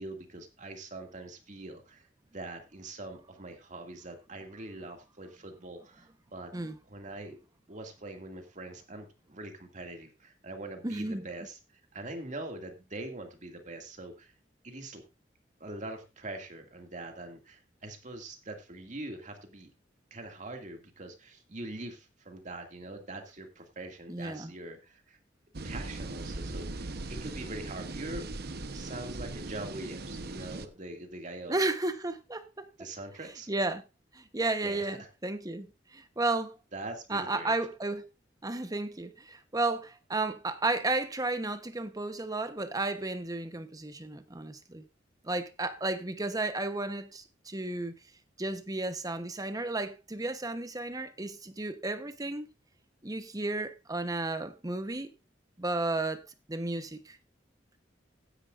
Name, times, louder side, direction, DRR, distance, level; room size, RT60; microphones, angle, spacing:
voice 1, 0.0-6.5 6.9-7.4 7.7-14.3 14.6-15.0 15.6-19.7 20.1-25.2 25.6-28.3 28.7-31.6 32.8-33.5 34.6-35.1 36.7-37.5, right 2 dB, 45° right, 2.3 m, -43 dB
voice 2, 10.8-11.2 24.1-24.5 31.5-32.7 33.5-33.8 34.1-36.6 37.1-38.1 38.4-44.8 45.2-48.0 48.4-52.5 53.0-55.1 55.6-56.2 56.5-57.2, right 2 dB, 20° right, 1.0 m, -33 dB
sound 1, 25.5-30.7, right 2 dB, 60° right, 1.0 m, -39 dB
15.0 x 10.5 x 2.5 m
head